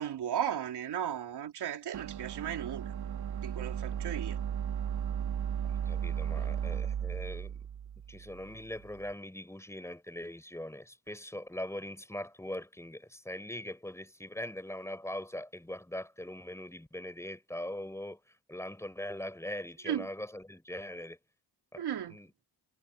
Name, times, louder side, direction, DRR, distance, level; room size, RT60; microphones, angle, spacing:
voice 1, 0.0-2.9 3.4-4.4 6.4-6.5 19.8-20.1 21.8-22.2, right 10 dB, 85° right, 3.6 m, -35 dB
sound 1, 1.9-9.0, right 9 dB, 70° right, 1.6 m, -35 dB
voice 2, 5.9-7.7 8.1-18.2 18.5-21.2 21.7-22.3, left 1 dB, 5° left, 4.3 m, -41 dB
cardioid pair, 110°, 39 cm